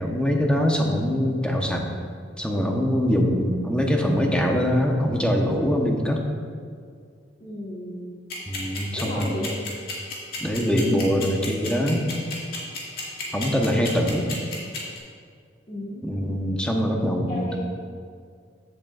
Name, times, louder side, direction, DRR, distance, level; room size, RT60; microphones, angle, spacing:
voice 1, 0.0-1.8 2.4-6.2 8.5-9.4 10.4-12.1 13.3-14.3 16.0-17.6, equal, 5° left, 0 dB, 1.0 m, -23 dB
voice 2, 7.4-8.2 8.9-9.5 13.5-14.3 15.7-16.5 17.3-17.6, left 1 dB, 35° left, -8 dB, 1.3 m, -35 dB
sound 1, 8.3-15.0, left 4 dB, 55° left, 2.1 m, -32 dB
14.5 x 7.8 x 2.5 m, 2.1 s
head